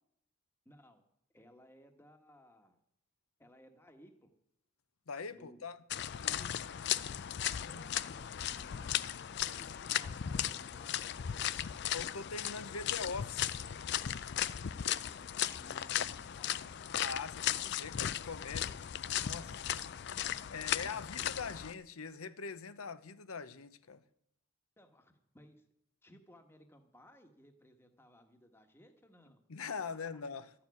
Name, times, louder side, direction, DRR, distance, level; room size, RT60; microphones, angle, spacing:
voice 1, 0.6-1.0 1.3-2.8 3.4-4.3 5.3-5.6 6.3-6.7 7.7-9.0 9.4-11.5 15.0-16.9 20.7-21.0 24.8-25.6 26.0-29.4 30.1-30.2, equal, 10° left, 1.3 m, -60 dB
voice 2, 5.1-5.8 6.2-6.7 7.6-7.9 11.9-13.5 16.9-18.8 19.1-19.9 20.5-24.0 29.5-30.5, left 5 dB, 90° left, 0.8 m, -43 dB
sound 1, 5.9-21.7, left 10 dB, 50° left, 0.4 m, -36 dB
13.5 x 7.0 x 9.4 m
head